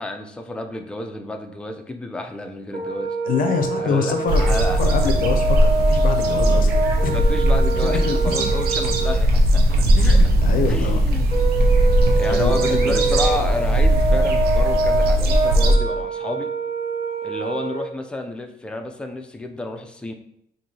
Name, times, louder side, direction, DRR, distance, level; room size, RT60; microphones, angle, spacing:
voice 1, 0.0-3.2 3.8-4.8 7.1-10.2 10.7-11.3 12.1-16.5 17.2-20.1, left 2 dB, 5° left, 4 dB, 0.4 m, -30 dB
Brass instrument, 2.7-9.2 11.3-17.9, right 3 dB, 30° right, 0.7 m, -25 dB
voice 2, 3.3-6.7 7.0-7.1 7.8-8.5 10.0-11.0 11.9-12.0 12.3-13.0, left 6 dB, 55° left, 5 dB, 0.5 m, -25 dB
sound 1, 4.3-15.8, right 1 dB, 70° right, 0.7 m, -18 dB
4.5 x 2.6 x 2.8 m, 0.74 s
cardioid pair, 110°, 17 cm